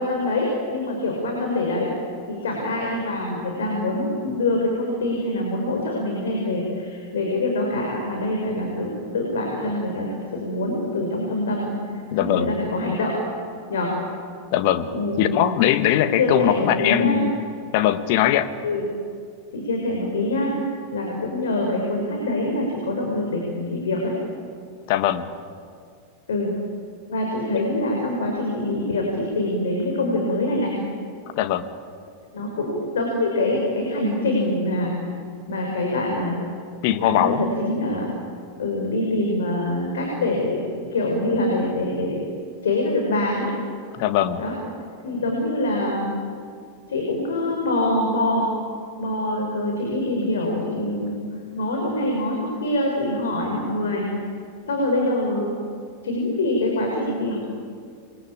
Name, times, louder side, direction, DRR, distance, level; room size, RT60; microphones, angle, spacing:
voice 1, 0.0-1.9 2.3-10.1 10.3-13.2 13.7-13.9 14.9-15.4 16.0-17.2 18.6-18.9 19.5-20.5 20.9-24.1 26.3-26.5 27.1-30.7 32.3-34.9 35.5-36.4 37.0-38.1 38.6-42.3 42.6-43.5 44.4-44.5 45.0-46.1 46.9-48.5 49.0-51.2 51.5-54.1 54.6-55.5 56.0-57.4, left 1 dB, 65° left, 0 dB, 5.7 m, -24 dB
voice 2, 12.1-12.6 14.5-17.3 17.7-18.5 24.9-25.3 27.5-27.6 31.4-31.7 36.8-37.4 44.0-44.4, left 11 dB, 45° left, 10 dB, 1.6 m, -21 dB
27.5 x 23.0 x 8.7 m, 2.2 s
figure-of-eight pair, 90°, 0 cm